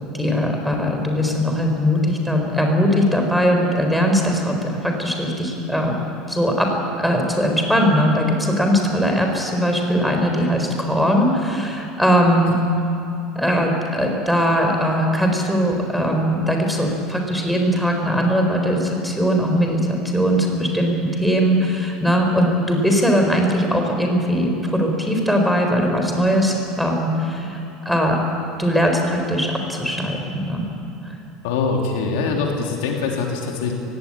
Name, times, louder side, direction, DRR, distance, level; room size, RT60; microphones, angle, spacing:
voice 1, 0.1-5.9 6.3-6.7 7.0-12.6 13.3-28.2 28.6-30.7 31.0-31.2, equal, ahead, 2 dB, 4.1 m, -20 dB
voice 2, 31.4-33.7, left 4 dB, 80° left, 0 dB, 3.2 m, -23 dB
18.0 x 16.5 x 9.8 m, 2.7 s
supercardioid pair, 115°, 0 cm